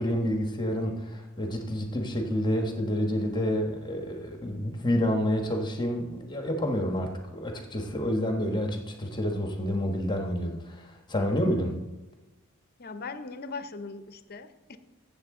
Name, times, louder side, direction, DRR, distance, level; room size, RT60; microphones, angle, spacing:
voice 1, 0.0-11.8, equal, 20° left, 3 dB, 1.1 m, -29 dB
voice 2, 12.8-14.8, left 4 dB, 45° left, 11 dB, 0.7 m, -39 dB
14.5 x 7.4 x 3.7 m, 1.1 s
head